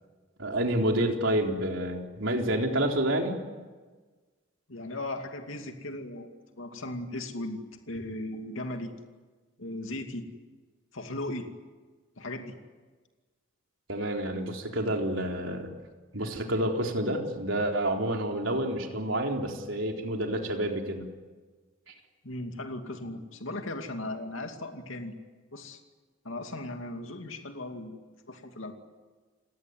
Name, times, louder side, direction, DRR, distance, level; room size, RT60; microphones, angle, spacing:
voice 1, 0.4-3.4 13.9-15.7 16.1-21.1 21.9-22.0, right 1 dB, 70° right, 2 dB, 3.9 m, -29 dB
voice 2, 4.7-7.6 7.9-8.9 9.6-10.3 10.9-11.5 12.2-12.5 22.2-25.2 25.5-25.8 26.2-28.7, left 1 dB, 75° left, 5 dB, 2.6 m, -37 dB
29.5 x 18.5 x 9.7 m, 1.4 s
head